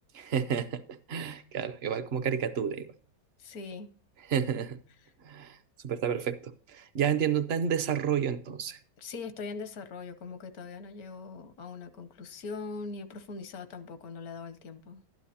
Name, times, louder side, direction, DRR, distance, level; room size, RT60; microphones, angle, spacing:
voice 1, 0.1-2.9 4.3-4.8 5.2-5.6 5.8-8.8, right 8 dB, 55° right, 0.8 m, -30 dB
voice 2, 3.4-3.9 5.0-5.1 9.0-15.0, left 4 dB, 85° left, 1.4 m, -41 dB
12.5 x 10.5 x 2.8 m
omnidirectional pair, 1.6 m